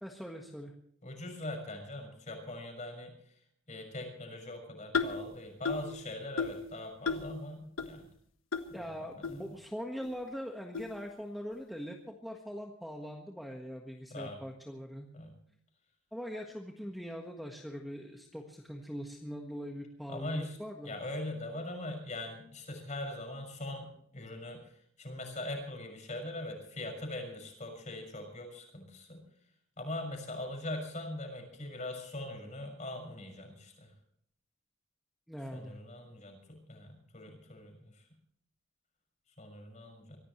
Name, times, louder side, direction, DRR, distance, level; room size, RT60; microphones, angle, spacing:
voice 1, 0.0-0.7 8.7-15.1 16.1-20.9 35.3-35.7, equal, ahead, 1 dB, 1.5 m, -42 dB
voice 2, 1.0-3.3 3.7-8.1 8.8-9.4 14.1-14.4 15.1-15.3 20.1-20.6 20.8-29.2 29.8-33.9 35.5-38.0 39.4-40.2, left 1 dB, 35° left, 4 dB, 6.1 m, -41 dB
sound 1, 4.9-5.3 5.7-5.9 6.4-6.7 7.1-7.3 7.8-7.9 8.5-8.6 9.2-9.3 10.0-10.1 10.7-10.9, left 4 dB, 70° left, 1.4 m, -33 dB
24.0 x 16.5 x 3.2 m, 0.66 s
head